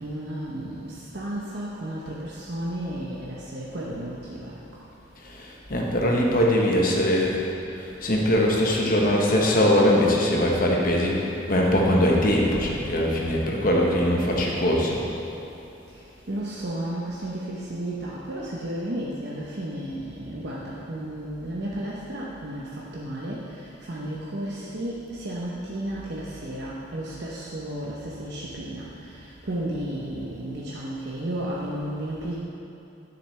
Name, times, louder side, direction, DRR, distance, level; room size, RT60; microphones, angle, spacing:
voice 1, 0.0-4.5 16.3-23.4 23.8-32.4, right 1 dB, 55° right, -5 dB, 0.8 m, -33 dB
voice 2, 5.2-7.5 7.7-15.0, left 1 dB, 45° left, -2 dB, 1.1 m, -22 dB
9.9 x 6.8 x 3.2 m, 3.0 s
head